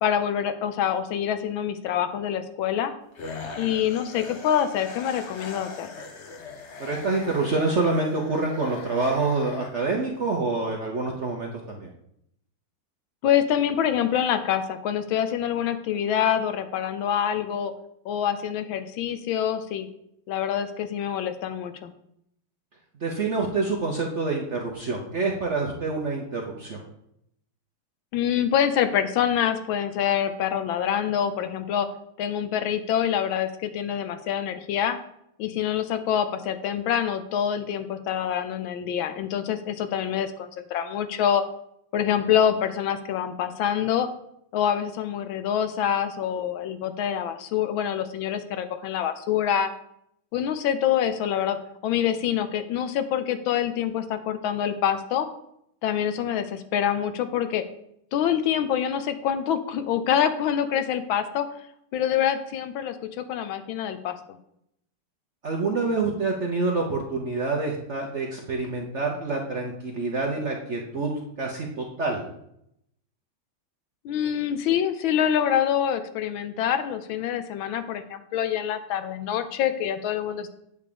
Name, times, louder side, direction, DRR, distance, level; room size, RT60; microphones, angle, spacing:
voice 1, 0.0-2.9 3.6-5.9 13.2-17.7 18.0-19.9 20.3-21.9 28.1-31.9 32.2-35.0 35.4-41.4 41.9-44.1 44.5-49.7 50.3-51.6 51.8-55.3 55.8-57.6 58.1-61.5 61.9-64.4 74.0-80.5, left 9 dB, 75° left, 10 dB, 1.4 m, -26 dB
sound 1, 3.1-10.4, left 4 dB, 60° left, 0.7 m, -41 dB
voice 2, 6.8-11.9 23.0-26.8 65.4-71.1 71.4-72.3, right 3 dB, 50° right, -1 dB, 0.9 m, -27 dB
8.4 x 3.6 x 6.7 m, 0.75 s
omnidirectional pair, 2.3 m